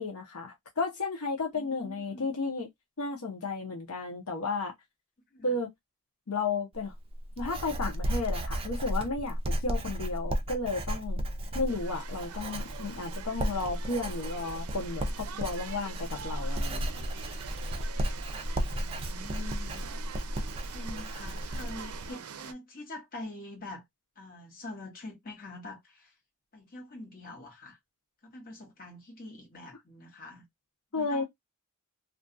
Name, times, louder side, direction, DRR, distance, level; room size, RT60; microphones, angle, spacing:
voice 1, 0.0-2.7 3.0-4.7 5.4-5.7 6.3-6.9 7.4-11.2 11.5-17.0 30.9-31.2, left 3 dB, 85° left, 0.8 m, -33 dB
voice 2, 1.5-2.3 5.3-5.6 18.6-19.9 20.7-23.8 24.2-26.1 26.5-27.8 28.2-30.4 30.9-31.2, left 2 dB, 45° left, 1.2 m, -45 dB
Writing, 6.7-22.1, equal, 25° right, 0.4 m, -34 dB
sound 1, 11.7-22.5, right 8 dB, 85° right, 0.4 m, -45 dB
2.5 x 2.3 x 2.5 m
head